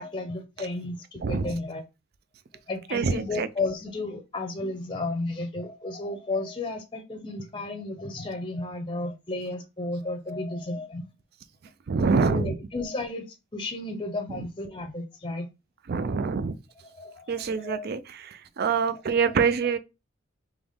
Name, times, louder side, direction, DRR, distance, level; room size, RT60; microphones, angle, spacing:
voice 1, 0.0-1.8 2.7-11.1 12.2-13.2 13.5-15.5 16.8-17.9 19.3-19.4, left 2 dB, 25° left, 0.6 m, -33 dB
voice 2, 1.2-1.6 2.9-3.5 11.9-12.6 14.3-14.5 15.9-16.5 17.3-19.8, right 5 dB, 50° right, 0.4 m, -26 dB
3.7 x 3.0 x 3.5 m
head